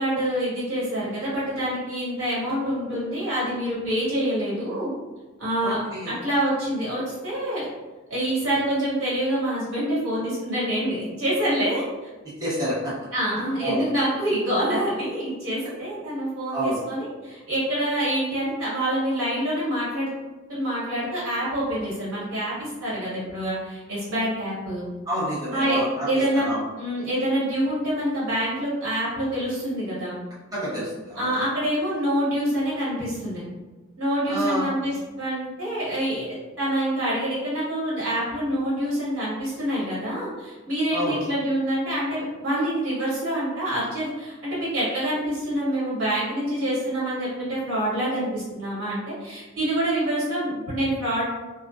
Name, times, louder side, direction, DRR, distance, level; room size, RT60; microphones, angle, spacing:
voice 1, 0.0-4.9 5.4-7.6 8.1-12.1 13.1-20.1 20.5-24.8 25.5-26.5 26.8-30.2 31.2-33.4 34.0-51.2, right 1 dB, 85° right, -8 dB, 1.3 m, -26 dB
voice 2, 5.6-6.1 12.4-12.9 13.6-13.8 16.5-16.8 25.1-26.6 30.5-31.3 34.3-34.7 40.9-41.2, right 1 dB, 20° right, -9 dB, 0.8 m, -28 dB
2.3 x 2.2 x 2.4 m, 1.2 s
head